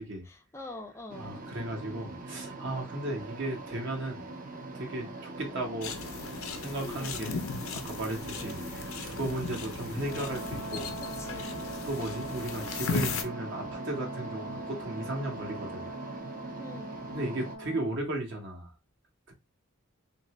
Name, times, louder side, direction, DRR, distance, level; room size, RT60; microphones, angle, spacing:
voice 1, 0.2-1.3 6.8-7.2 8.3-8.7 11.0-11.7 16.6-17.0, left 2 dB, 15° left, 0.3 m, -44 dB
sound 1, 1.1-17.6, right 2 dB, 45° right, 0.6 m, -42 dB
voice 2, 1.2-4.3 4.7-6.1 6.6-10.9 11.4-11.5 11.8-15.9 17.1-18.7 19.3-19.4, right 1 dB, 60° right, 1.0 m, -36 dB
sound 2, 5.8-13.2, left 4 dB, 80° left, 0.5 m, -37 dB
Brass instrument, 10.0-18.0, right 1 dB, 10° right, 0.7 m, -42 dB
2.8 x 2.5 x 3.0 m
head